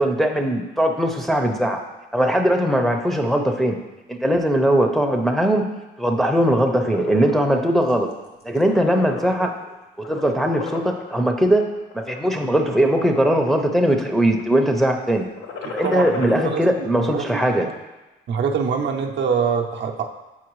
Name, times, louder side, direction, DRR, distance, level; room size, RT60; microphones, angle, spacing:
voice 1, 0.0-1.8 2.1-3.8 4.1-5.7 6.0-8.1 8.4-9.5 10.1-15.2 15.7-17.7, right 1 dB, ahead, 2 dB, 0.6 m, -20 dB
sound 1, 6.4-7.4 7.9-8.1 8.4-9.7 10.0-11.2 11.8-12.3 12.9-13.6 13.9-14.4 15.3-16.6, left 5 dB, 85° left, 0.8 m, -34 dB
voice 2, 15.6-17.7 18.3-20.0, right 6 dB, 60° right, 2 dB, 0.6 m, -25 dB
7.3 x 4.4 x 3.1 m, 1.1 s
cardioid pair, 90°, 21 cm